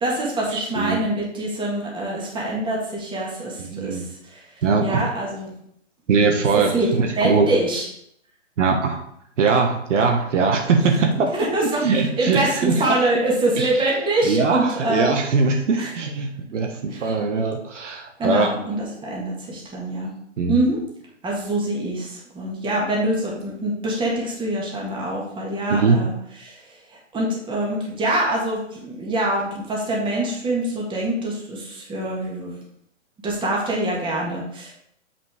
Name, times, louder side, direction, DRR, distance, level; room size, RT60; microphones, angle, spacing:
voice 1, 0.0-4.0 4.3-4.4 4.8-5.5 6.5-6.9 7.2-7.9 11.5-15.1 15.8-15.9 16.9-17.1 18.2-20.1 20.5-20.8 21.2-26.1 26.4-26.6 27.1-32.5 33.2-34.7, right 1 dB, 15° right, -3 dB, 1.9 m, -25 dB
voice 2, 0.5-1.0 3.6-4.0 4.6-5.1 6.1-7.5 8.6-9.0 9.4-11.3 11.6-13.0 13.6-13.8 14.2-18.8 20.4-20.6 25.7-26.0, right 4 dB, 70° right, 3 dB, 1.3 m, -21 dB
7.3 x 5.9 x 3.6 m, 0.71 s
hypercardioid pair, 130°, 37 cm